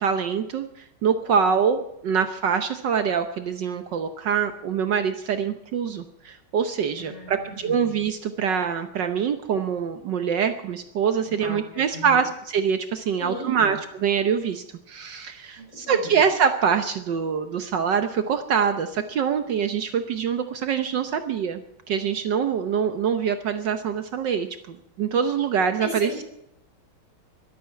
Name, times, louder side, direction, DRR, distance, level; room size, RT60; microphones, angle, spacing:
voice 1, 0.0-21.6 21.9-26.2, right 7 dB, 65° right, 8 dB, 1.5 m, -24 dB
voice 2, 6.9-7.8 11.2-12.3 13.2-13.8 15.6-16.2 25.8-26.3, left 1 dB, 30° left, -1 dB, 6.3 m, -37 dB
13.0 x 12.5 x 8.5 m, 0.80 s
omnidirectional pair, 2.2 m